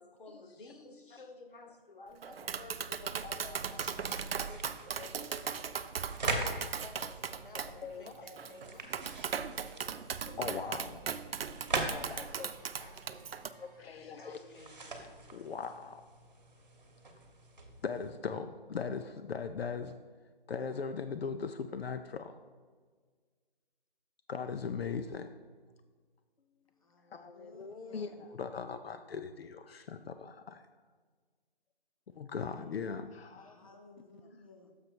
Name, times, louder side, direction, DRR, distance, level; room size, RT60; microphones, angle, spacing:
voice 1, 0.0-4.1 4.9-6.2 7.1-8.9 10.3-10.8 12.4-13.3 14.2-15.1, left 2 dB, 60° left, 5 dB, 1.0 m, -54 dB
Tap, 2.2-13.5, right 7 dB, 75° right, 0.5 m, -38 dB
sound 1, 2.8-13.8, right 1 dB, ahead, 0.8 m, -62 dB
voice 2, 3.2-3.6 4.5-4.6 5.0-5.2 6.8-7.1 7.7-8.1 10.4-11.0 11.8-12.5 13.6-14.4 15.3-16.0 17.8-20.0 20.5-22.4 24.3-25.3 27.1-30.6 32.1-33.6, left 5 dB, 80° left, 8 dB, 0.5 m, -40 dB
sound 2, 3.6-18.1, right 2 dB, 45° right, 1.1 m, -43 dB
voice 3, 26.8-28.2 33.4-34.7, left 2 dB, 35° left, 2 dB, 0.7 m, -57 dB
6.8 x 5.3 x 4.4 m, 1.5 s
hypercardioid pair, 175°, 30 cm